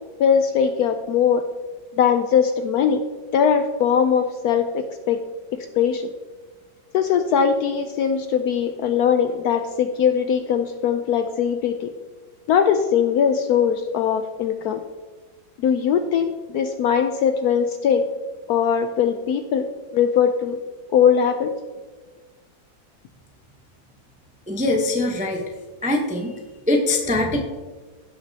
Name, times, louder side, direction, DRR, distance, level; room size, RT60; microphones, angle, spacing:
voice 1, 0.2-1.5 1.9-3.0 3.3-5.2 5.5-6.1 6.9-11.9 12.5-14.8 15.6-18.0 18.5-20.6 20.9-21.5, left 7 dB, 70° left, 8 dB, 0.9 m, -20 dB
voice 2, 24.5-25.4 25.8-26.3 26.7-27.4, left 2 dB, 10° right, 1 dB, 0.3 m, -22 dB
16.0 x 6.1 x 2.8 m, 1.3 s
omnidirectional pair, 2.0 m